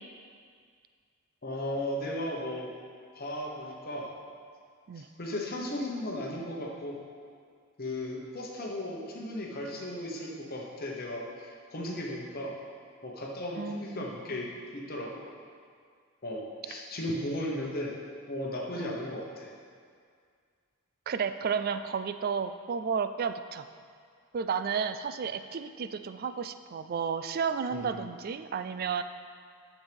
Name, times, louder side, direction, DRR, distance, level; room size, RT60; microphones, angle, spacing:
voice 1, 1.4-2.7 3.1-4.1 5.0-7.0 7.8-12.6 13.0-15.1 16.2-18.0 18.3-19.5 27.7-28.1, left 1 dB, 45° left, -2 dB, 1.1 m, -36 dB
voice 2, 13.6-14.0 18.8-18.9 21.1-23.6 24.3-29.0, right 6 dB, 40° right, 11 dB, 0.3 m, -32 dB
11.0 x 7.3 x 3.5 m, 2.1 s
head